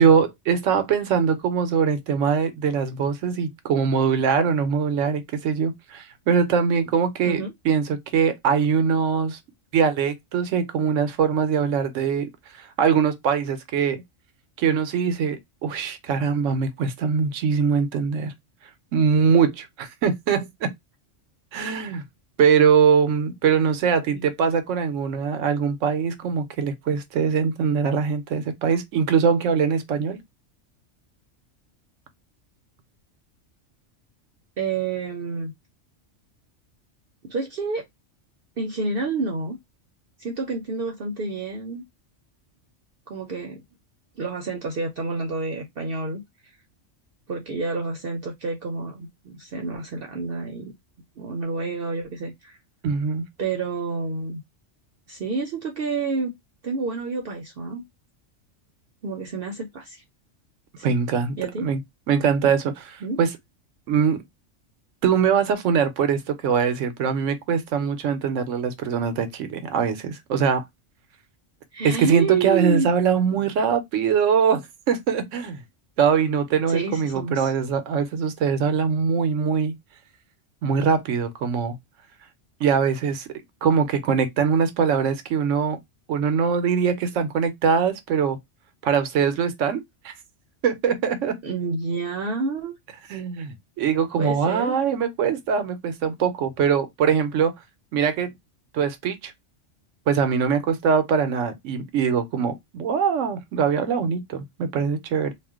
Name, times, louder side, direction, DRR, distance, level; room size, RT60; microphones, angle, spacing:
voice 1, 0.0-9.4 9.7-12.3 12.6-14.0 14.6-18.3 18.9-20.7 21.5-22.0 22.4-30.2 52.8-53.2 60.8-61.8 62.1-63.3 63.9-64.2 65.0-70.6 71.8-75.6 76.0-79.7 80.6-81.8 82.6-85.8 86.1-88.4 88.8-90.1 90.6-91.3 93.1-97.5 97.9-98.3 98.7-99.3 100.1-105.3, right 6 dB, 90° right, 1.0 m, -22 dB
voice 2, 34.6-35.5 37.2-37.8 38.6-39.6 40.2-41.8 43.1-43.6 44.2-46.2 47.3-50.7 51.2-52.6 53.4-54.4 55.1-56.3 56.6-57.8 59.0-60.0 60.8-60.9 61.4-61.7 63.0-63.2 71.7-72.9 76.7-77.5 91.4-92.7 94.2-94.8, right 4 dB, 55° right, 0.7 m, -29 dB
2.4 x 2.2 x 3.4 m
omnidirectional pair, 1.3 m